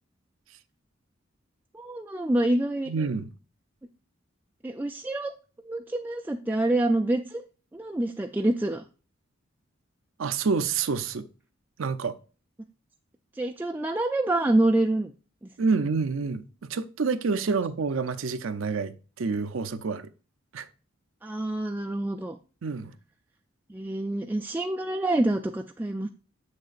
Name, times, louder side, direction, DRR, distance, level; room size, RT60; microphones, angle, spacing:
voice 1, 1.7-2.9 4.6-5.3 5.7-7.4 7.7-8.8 13.4-15.1 21.2-22.4 23.7-26.1, right 1 dB, 10° right, 0.3 m, -26 dB
voice 2, 2.9-3.3 10.2-11.3 11.8-12.2 15.6-16.4 16.7-20.1 20.5-20.7 22.6-22.9, right 4 dB, 70° right, 0.5 m, -28 dB
6.8 x 6.5 x 2.4 m
head